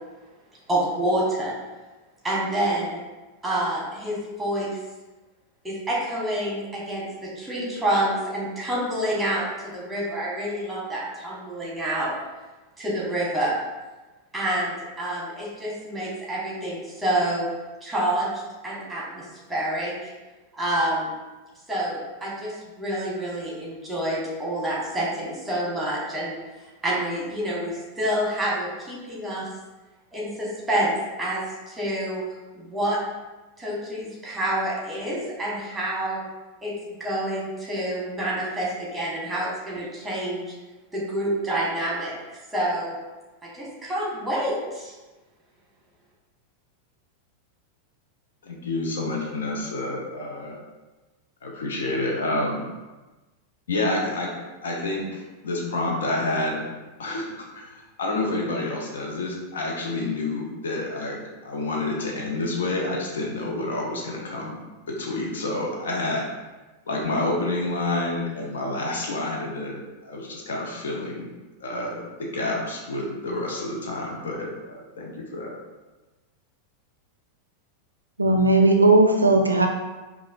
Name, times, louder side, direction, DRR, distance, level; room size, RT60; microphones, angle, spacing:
voice 1, 0.7-1.5 2.2-3.0 3.4-4.8 5.6-12.1 12.8-13.5 14.3-17.5 17.8-18.3 18.6-19.9 20.5-21.1 21.7-26.3 26.8-29.5 30.1-32.2 32.5-33.0 33.6-36.2 36.6-36.7 37.0-40.4 40.9-42.9 43.4-44.9, right 1 dB, 10° right, -6 dB, 1.2 m, -28 dB
voice 2, 48.4-50.6 51.4-52.6 53.7-54.3 54.6-56.7 57.0-57.7 58.0-61.2 61.4-64.6 65.0-66.3 66.9-71.3 71.6-75.5, left 2 dB, 65° left, -1 dB, 0.7 m, -28 dB
voice 3, 78.2-79.7, right 2 dB, 80° right, 3 dB, 0.4 m, -17 dB
4.8 x 2.4 x 2.5 m, 1.2 s
figure-of-eight pair, 90°, 0 cm